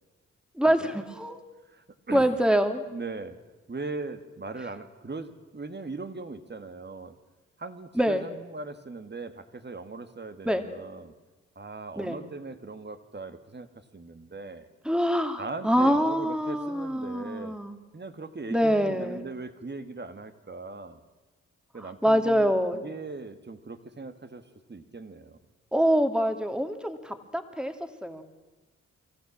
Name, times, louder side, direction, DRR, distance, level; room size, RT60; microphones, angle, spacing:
voice 1, 0.5-1.4 2.1-2.8 8.0-8.3 10.4-10.6 12.0-12.2 14.8-17.8 18.5-19.2 21.8-22.8 25.7-27.7 28.0-28.2, equal, 5° right, 7 dB, 2.4 m, -25 dB
voice 2, 1.7-2.4 2.9-3.4 3.7-7.2 7.6-11.1 11.6-14.7 15.4-17.6 17.9-21.0 21.7-24.4 24.7-25.4, right 3 dB, 35° right, 10 dB, 1.9 m, -39 dB
25.0 x 14.0 x 7.3 m, 1.2 s
supercardioid pair, 40°, 31 cm